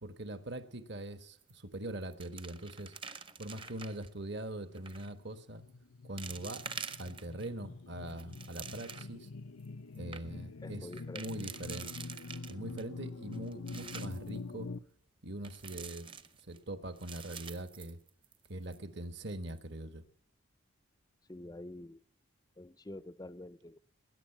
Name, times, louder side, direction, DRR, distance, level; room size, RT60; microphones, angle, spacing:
voice 1, 0.0-2.9 3.4-5.6 6.0-6.6 7.0-9.3 9.9-11.9 12.5-14.7 15.2-16.1 16.5-18.0 18.5-20.0, right 1 dB, 55° right, 1.4 m, -42 dB
sound 1, 1.4-1.7 2.0-4.1 4.7-5.1 5.7-5.8 6.2-7.5 8.0-9.2 9.6-9.7 9.9-10.2 10.9-12.8 13.3-14.3 15.4-16.6 17.0-18.5 18.7-18.8 19.3-19.6, right 6 dB, 25° right, 0.8 m, -46 dB
sound 2, 5.3-14.8, left 3 dB, 90° left, 0.7 m, -45 dB
voice 2, 10.6-11.3 21.3-22.0 22.6-23.8, left 1 dB, 20° left, 0.5 m, -47 dB
20.5 x 9.7 x 5.7 m
head